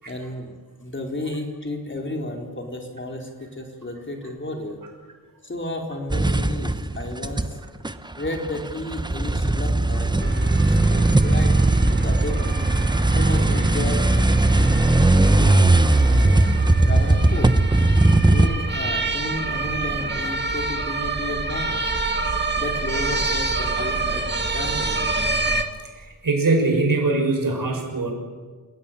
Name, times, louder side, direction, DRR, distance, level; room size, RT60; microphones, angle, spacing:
voice 1, 0.1-4.8 5.4-7.6 8.2-12.6 13.1-14.0 14.6-14.8 15.1-15.8 16.1-17.6 18.3-21.9 22.5-25.1, left 1 dB, 35° left, 2 dB, 4.1 m, -32 dB
sound 1, 6.1-7.6 7.8-18.5, right 2 dB, 10° right, 1.0 m, -18 dB
sound 2, 10.2-25.6, right 3 dB, 30° right, 2.2 m, -27 dB
voice 2, 25.9-28.1, right 3 dB, 70° right, 2 dB, 6.5 m, -22 dB
28.5 x 17.5 x 9.1 m, 1.5 s
wide cardioid pair, 110°, 35 cm